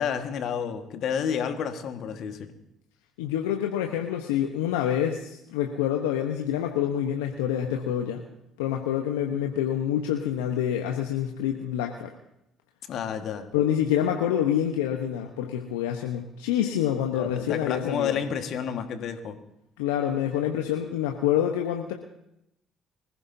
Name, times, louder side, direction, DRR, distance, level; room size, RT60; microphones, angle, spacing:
voice 1, 0.0-2.5 12.9-13.5 17.1-19.4, left 7 dB, 60° left, 7 dB, 1.6 m, -30 dB
voice 2, 3.2-8.2 8.6-12.1 13.5-18.2 19.8-21.9, left 10 dB, 80° left, 3 dB, 1.0 m, -27 dB
25.0 x 15.0 x 2.8 m, 0.81 s
hypercardioid pair, 50°, 0 cm